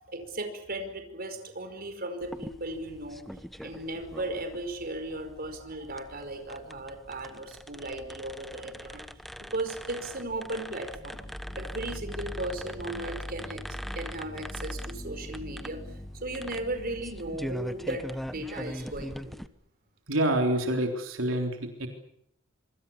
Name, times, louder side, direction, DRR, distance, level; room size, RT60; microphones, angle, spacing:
voice 1, 0.1-3.2 3.6-9.1 9.5-11.2 11.6-13.6 13.9-19.4, right 1 dB, 50° right, 7 dB, 5.0 m, -36 dB
sound 1, 2.2-19.5, equal, ahead, 1.1 m, -42 dB
sound 2, 10.9-18.6, equal, 20° left, 1.6 m, -42 dB
voice 2, 20.1-21.9, right 1 dB, 85° right, 3 dB, 3.7 m, -27 dB
27.0 x 25.0 x 7.2 m, 0.74 s
head